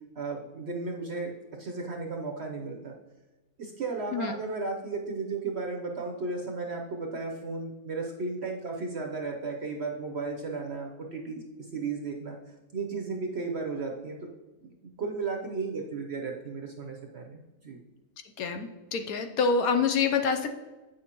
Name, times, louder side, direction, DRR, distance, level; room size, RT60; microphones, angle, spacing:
voice 1, 0.1-1.3 1.6-2.9 3.6-11.4 11.7-12.4 12.7-14.2 14.6-14.7 15.0-17.8, right 4 dB, 55° right, 2 dB, 0.8 m, -34 dB
voice 2, 18.4-20.6, left 5 dB, 70° left, 6 dB, 1.0 m, -26 dB
8.5 x 6.3 x 2.9 m, 1.1 s
omnidirectional pair, 1.7 m